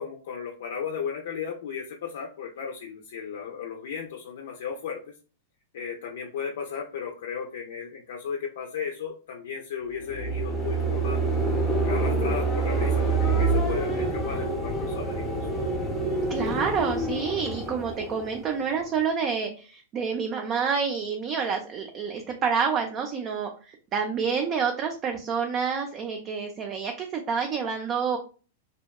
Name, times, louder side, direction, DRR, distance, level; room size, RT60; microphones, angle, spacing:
voice 1, 0.0-5.1 5.7-11.2 11.8-15.5, left 7 dB, 70° left, 1 dB, 0.4 m, -35 dB
sound 1, 10.0-19.0, right 3 dB, ahead, 0.7 m, -27 dB
voice 2, 16.3-28.2, right 6 dB, 35° right, 3 dB, 0.4 m, -28 dB
2.7 x 2.1 x 2.3 m, 0.37 s
hypercardioid pair, 115°, 0 cm